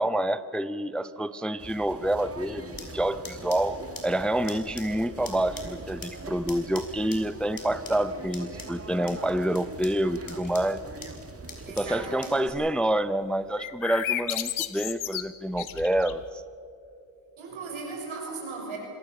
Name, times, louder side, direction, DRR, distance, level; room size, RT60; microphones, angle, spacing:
voice 1, 0.0-10.8 11.8-16.4, right 1 dB, ahead, 13 dB, 0.6 m, -28 dB
sound 1, 1.6-12.1, right 3 dB, 30° right, 1.8 m, -42 dB
sound 2, 2.7-12.5, left 3 dB, 45° left, 4.2 m, -47 dB
voice 2, 11.7-12.6 17.4-18.8, right 4 dB, 75° right, 0 dB, 6.5 m, -37 dB
sound 3, 13.6-16.3, left 10 dB, 75° left, 1.2 m, -32 dB
25.0 x 19.5 x 7.1 m, 2.7 s
cardioid pair, 70°, 48 cm